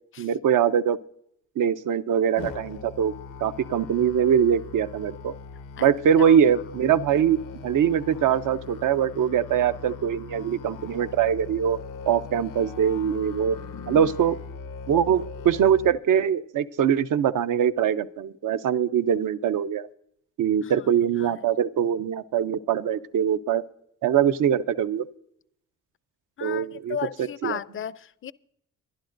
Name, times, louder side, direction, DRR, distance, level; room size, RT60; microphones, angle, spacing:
voice 1, 0.2-1.0 1.6-3.1 3.4-5.3 5.8-11.8 12.1-13.6 13.9-14.4 14.9-19.9 20.4-23.6 24.0-25.1 26.4-27.6, right 8 dB, 80° right, 0.6 m, -23 dB
Musical instrument, 2.4-15.9, left 5 dB, 90° left, 0.7 m, -40 dB
voice 2, 13.7-14.1 20.6-20.9 21.2-21.4 26.4-28.3, left 9 dB, 40° left, 0.4 m, -35 dB
22.0 x 11.5 x 2.6 m
cardioid pair, 95°, 31 cm